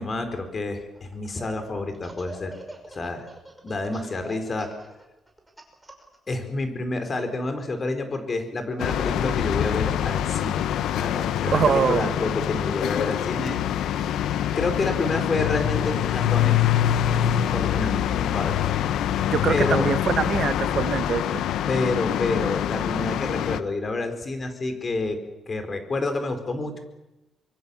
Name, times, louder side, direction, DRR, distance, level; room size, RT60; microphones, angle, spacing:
voice 1, 0.0-2.6 2.9-3.3 3.6-4.7 6.3-10.6 10.9-13.6 14.5-16.7 17.5-18.6 19.5-19.9 21.7-25.2 25.5-26.8, left 2 dB, 35° left, 7 dB, 4.9 m, -28 dB
Laughter, 0.9-1.5 1.9-6.2, right 2 dB, 10° right, 5.9 m, -44 dB
sound 1, 8.8-23.6, left 10 dB, 80° left, 1.0 m, -25 dB
voice 2, 11.5-12.1 19.2-21.4, right 7 dB, 55° right, 11 dB, 1.6 m, -24 dB
25.0 x 23.0 x 7.3 m, 0.96 s
cardioid pair, 90°, 0 cm